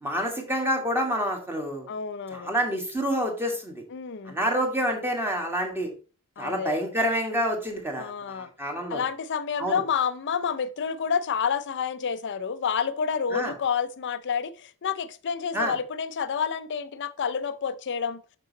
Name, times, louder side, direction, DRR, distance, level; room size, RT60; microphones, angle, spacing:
voice 1, 0.0-1.9 2.3-3.8 4.2-5.9 6.4-9.0 9.6-9.8 13.3-13.5 15.5-15.7, equal, 10° right, 1.6 m, -28 dB
voice 2, 1.9-2.5 3.9-4.4 6.4-6.8 8.0-8.5 8.9-18.2, left 6 dB, 55° left, 0.5 m, -29 dB
6.4 x 6.2 x 3.9 m
head